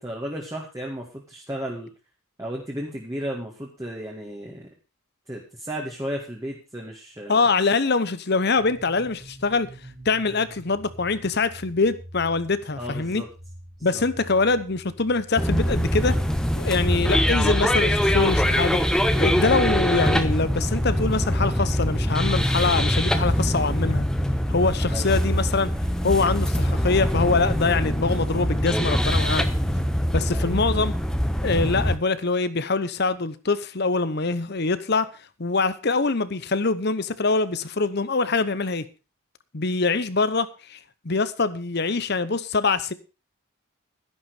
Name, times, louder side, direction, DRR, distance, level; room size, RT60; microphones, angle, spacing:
voice 1, 0.0-1.9 2.4-4.7 5.3-7.4 12.8-13.3 13.9-14.0 24.9-25.2 30.3-30.7, equal, 15° right, 2.2 m, -34 dB
voice 2, 7.3-9.7 10.0-13.2 13.8-16.2 16.5-24.1 24.5-25.7 26.0-29.5 30.1-31.0 31.4-35.1 35.4-38.8 39.5-40.8 41.0-42.9, left 4 dB, 50° left, 0.9 m, -24 dB
sound 1, 8.5-26.8, equal, 85° right, 4.6 m, -42 dB
sound 2, 15.4-32.0, equal, 5° left, 1.0 m, -23 dB
12.0 x 11.0 x 4.9 m
head